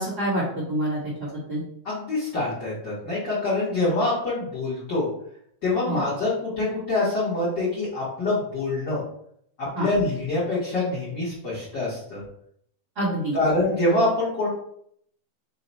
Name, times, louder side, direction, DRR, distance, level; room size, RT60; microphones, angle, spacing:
voice 1, 0.0-1.6 5.9-6.0 9.7-9.9 12.9-13.4, right 1 dB, 45° right, -9 dB, 1.3 m, -27 dB
voice 2, 1.8-5.1 5.6-9.0 9.8-12.2 13.3-14.5, left 2 dB, 65° left, -10 dB, 1.0 m, -25 dB
5.6 x 2.2 x 4.1 m, 0.69 s
omnidirectional pair, 4.1 m